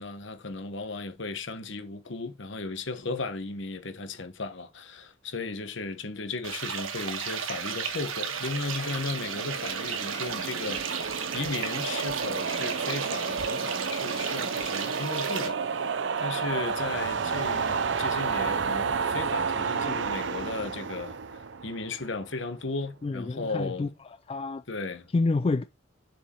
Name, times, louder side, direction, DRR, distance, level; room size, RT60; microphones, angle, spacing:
voice 1, 0.0-15.9 16.2-23.9 24.7-25.1, left 3 dB, 65° left, 1.1 m, -36 dB
sound 1, 6.4-15.5, right 7 dB, 85° right, 1.4 m, -34 dB
sound 2, 8.0-22.3, right 5 dB, 60° right, 0.6 m, -31 dB
voice 2, 23.0-23.9 24.3-24.6 25.1-25.6, left 3 dB, 30° left, 0.3 m, -27 dB
7.1 x 4.8 x 4.4 m
head